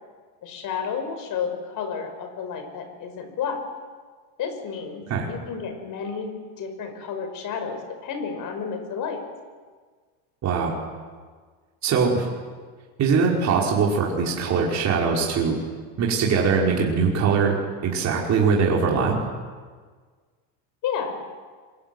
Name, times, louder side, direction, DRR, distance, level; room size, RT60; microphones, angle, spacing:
voice 1, 0.4-3.6 4.4-9.2 20.8-21.2, left 6 dB, 40° left, 6 dB, 5.7 m, -31 dB
voice 2, 10.4-10.8 11.8-12.3 13.0-15.6 16.0-17.5 17.8-19.2, right 5 dB, 35° right, -3 dB, 5.5 m, -21 dB
26.5 x 23.5 x 9.4 m, 1.5 s
cardioid pair, 150°, 49 cm